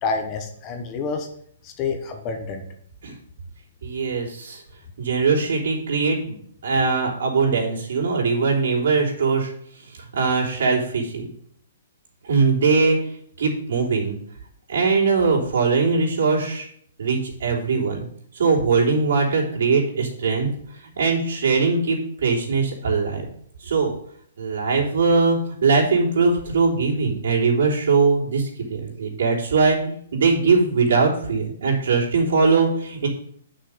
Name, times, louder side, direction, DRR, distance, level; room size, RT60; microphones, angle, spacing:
voice 1, 0.0-1.3 1.6-2.6, left 4 dB, 20° left, 5 dB, 1.0 m, -28 dB
voice 2, 3.8-4.6 5.0-6.4 6.6-9.5 10.1-11.3 12.3-13.0 13.4-14.2 14.7-16.7 17.0-18.0 18.3-20.5 20.8-23.2 23.6-23.9 24.4-33.1, right 4 dB, 70° right, -2 dB, 3.4 m, -21 dB
8.8 x 6.2 x 5.0 m, 0.63 s
hypercardioid pair, 175°, 0 cm